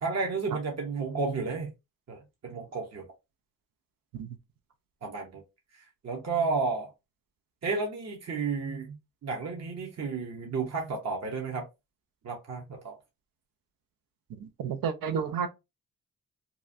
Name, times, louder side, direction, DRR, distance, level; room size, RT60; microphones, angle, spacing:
voice 1, 0.0-1.7 2.1-3.0 5.0-5.4 5.7-6.9 7.6-9.0 9.2-11.7 12.2-13.0, right 4 dB, 50° right, 0.9 m, -32 dB
voice 2, 14.4-15.5, right 7 dB, 75° right, 0.6 m, -31 dB
2.8 x 2.4 x 2.6 m
supercardioid pair, 50°, 34 cm